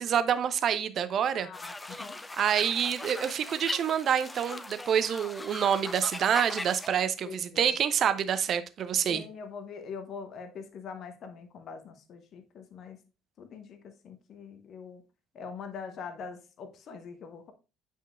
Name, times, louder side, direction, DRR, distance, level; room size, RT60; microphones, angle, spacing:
voice 1, 0.0-1.5 2.4-9.2, right 8 dB, 45° right, 0.6 m, -27 dB
voice 2, 1.3-1.7 2.0-2.2 6.9-7.8 9.1-13.0 13.4-15.0 15.3-17.5, left 5 dB, 45° left, 0.9 m, -43 dB
sound 1, 1.5-6.9, left 2 dB, 15° left, 0.7 m, -39 dB
8.5 x 5.4 x 2.4 m
figure-of-eight pair, 55°, 0 cm